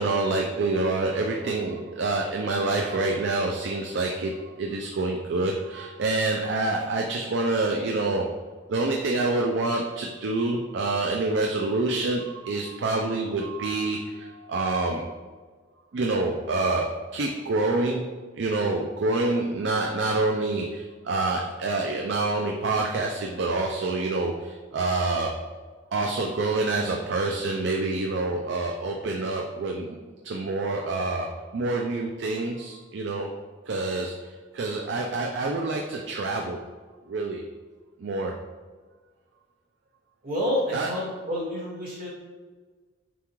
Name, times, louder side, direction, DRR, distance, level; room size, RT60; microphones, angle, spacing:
voice 1, 0.0-8.3 8.7-15.1 15.9-25.3 25.9-30.0 30.2-33.3 33.7-36.6 37.1-37.4 38.0-38.3 40.7-40.9, right 2 dB, 65° right, 1 dB, 0.4 m, -27 dB
voice 2, 40.2-42.1, equal, 50° right, -5 dB, 1.5 m, -29 dB
6.9 x 2.4 x 3.0 m, 1.4 s
head